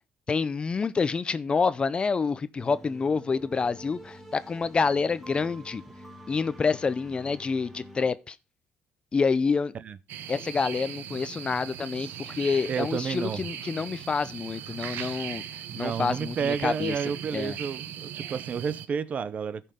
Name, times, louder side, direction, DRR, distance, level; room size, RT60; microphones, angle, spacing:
voice 1, 0.3-5.8 6.3-8.4 9.1-9.7 10.3-15.4 15.8-16.9 17.3-17.6, left 5 dB, 30° left, 0.5 m, -27 dB
sound 1, 2.6-8.1, equal, 5° right, 2.1 m, -47 dB
sound 2, 10.1-18.9, right 10 dB, 75° right, 0.9 m, -39 dB
voice 2, 12.7-13.4 15.7-19.6, right 7 dB, 45° right, 0.6 m, -31 dB
14.0 x 5.5 x 3.7 m
cardioid pair, 105°, 3 cm